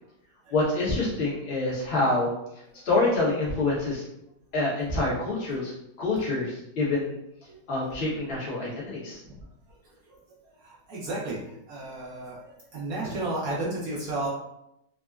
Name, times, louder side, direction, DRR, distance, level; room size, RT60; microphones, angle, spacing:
voice 1, 0.5-2.3 2.8-4.0 4.5-7.2 7.7-9.2, left 2 dB, 45° left, -6 dB, 1.1 m, -26 dB
voice 2, 10.6-11.4 11.7-12.4 12.7-14.3, right 2 dB, 65° right, -5 dB, 1.0 m, -32 dB
3.7 x 2.0 x 2.2 m, 0.82 s
omnidirectional pair, 1.9 m